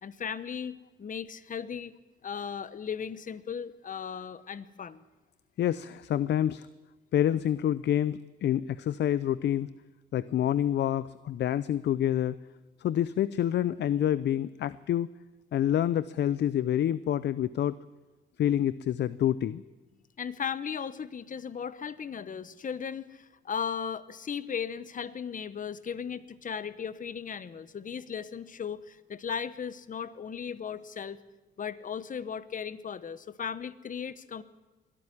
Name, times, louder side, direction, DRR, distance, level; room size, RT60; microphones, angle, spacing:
voice 1, 0.0-1.9 2.2-5.0 20.2-31.2 31.6-34.4, left 7 dB, 40° left, 15 dB, 1.0 m, -36 dB
voice 2, 5.6-6.7 7.1-9.7 10.1-12.4 12.8-15.1 15.5-17.7 18.4-19.6, left 11 dB, 60° left, 17 dB, 0.6 m, -27 dB
22.0 x 12.5 x 10.0 m, 1.2 s
cardioid pair, 90°, 20 cm